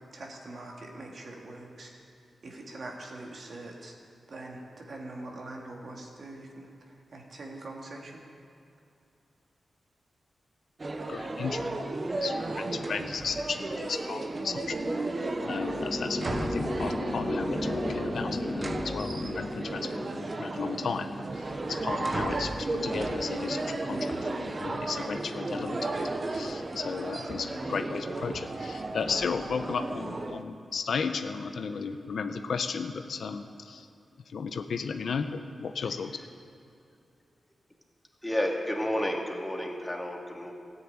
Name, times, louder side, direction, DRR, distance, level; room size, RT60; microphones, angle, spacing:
voice 1, 0.0-2.0 2.4-4.0 4.3-8.2, right 2 dB, 55° right, 0 dB, 2.6 m, -43 dB
sound 1, 10.8-30.4, right 2 dB, 35° right, 1.0 m, -34 dB
voice 2, 11.1-11.9 12.2-14.8 15.4-25.9 26.3-33.9 34.3-36.1, left 5 dB, 75° left, 8 dB, 0.9 m, -35 dB
sound 2, 15.2-20.1, left 2 dB, 30° left, 1.7 m, -34 dB
voice 3, 38.2-40.5, left 1 dB, 10° left, 0 dB, 2.2 m, -31 dB
14.0 x 10.0 x 9.0 m, 2.6 s
wide cardioid pair, 90°, 0 cm